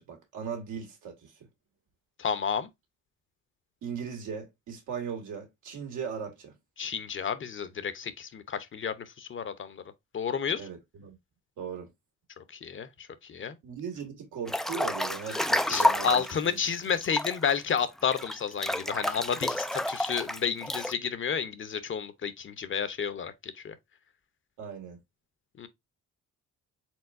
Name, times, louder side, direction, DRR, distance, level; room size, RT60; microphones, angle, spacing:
voice 1, 0.0-1.3 3.8-6.5 10.6-11.2 11.6-11.9 13.6-16.6 24.6-25.0, right 6 dB, 85° right, 2.0 m, -38 dB
voice 2, 2.2-2.7 6.8-9.8 10.1-10.6 12.6-12.9 13.2-13.6 15.7-23.7 25.6-25.7, left 7 dB, 40° left, 0.8 m, -31 dB
Breathing / Bathtub (filling or washing) / Splash splatter, 14.5-16.4 16.9-20.9, left 1 dB, ahead, 0.3 m, -29 dB
4.5 x 3.8 x 2.6 m
cardioid pair, 90°, 30 cm